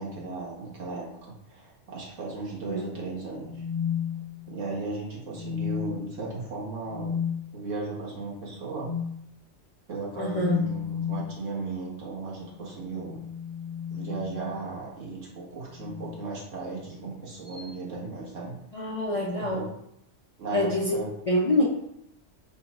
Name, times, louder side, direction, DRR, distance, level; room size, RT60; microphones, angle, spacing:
voice 1, 0.0-3.6 4.5-7.2 7.5-8.9 9.9-13.2 13.9-18.5 19.4-19.7 20.4-21.1 21.6-21.7, right 3 dB, 85° right, -4 dB, 1.6 m, -36 dB
sound 1, 3.4-4.7 5.3-6.1 6.9-7.4 8.8-9.2 10.3-11.3 12.8-14.7 15.7-16.2 17.4-17.7, left 8 dB, 60° right, 1.3 m, -33 dB
voice 2, 10.2-10.6 18.7-19.6 20.5-21.0 21.3-21.6, left 1 dB, 40° left, -4 dB, 0.5 m, -25 dB
4.4 x 2.3 x 4.0 m, 0.75 s
omnidirectional pair, 1.2 m